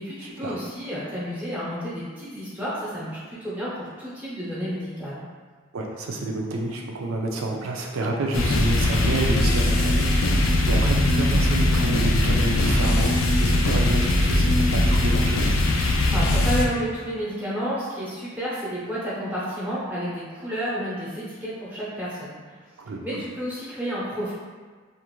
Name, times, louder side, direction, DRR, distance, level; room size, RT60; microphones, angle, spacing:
voice 1, 0.0-5.2 16.1-22.6 23.0-24.3, equal, 10° right, -10 dB, 0.7 m, -31 dB
voice 2, 5.7-15.5 22.8-23.2, right 2 dB, 90° right, 0 dB, 0.5 m, -29 dB
sound 1, 8.3-16.7, left 1 dB, 85° left, 0.4 m, -20 dB
2.5 x 2.4 x 2.9 m, 1.5 s
head